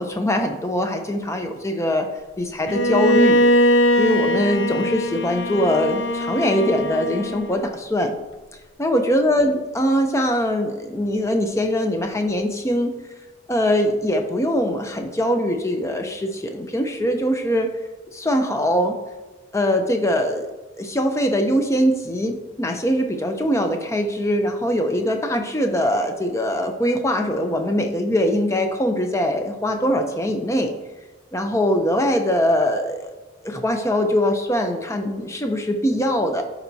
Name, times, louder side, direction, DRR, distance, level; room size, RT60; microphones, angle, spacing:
voice 1, 0.0-2.1 2.4-3.4 4.0-8.2 8.8-12.9 13.5-17.7 18.1-19.0 19.5-20.5 20.8-30.7 31.3-33.1 33.4-36.4, equal, 15° left, 4 dB, 0.5 m, -22 dB
Bowed string instrument, 2.7-7.7, equal, 65° left, 0.4 m, -21 dB
11.5 x 4.1 x 2.7 m, 1.2 s
head